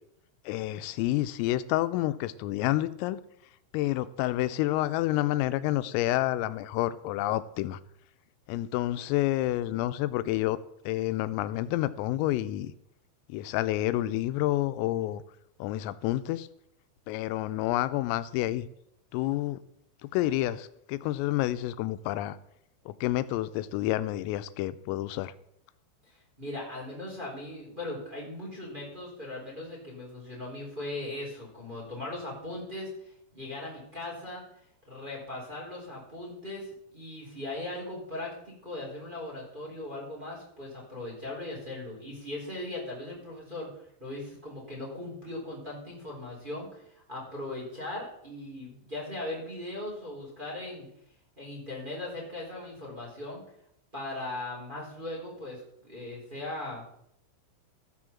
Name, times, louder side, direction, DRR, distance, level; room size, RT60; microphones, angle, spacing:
voice 1, 0.5-3.2 3.7-7.8 8.5-10.6 10.9-12.7 13.3-15.2 15.6-16.5 17.1-18.7 19.1-19.6 20.0-22.4 22.9-25.3, left 15 dB, 90° left, 14 dB, 3.3 m, -29 dB
voice 2, 26.1-34.4 34.9-46.8 47.1-50.9 51.4-53.4 53.9-56.8, left 2 dB, 10° right, -5 dB, 3.2 m, -39 dB
13.5 x 6.3 x 7.2 m, 0.75 s
omnidirectional pair, 5.9 m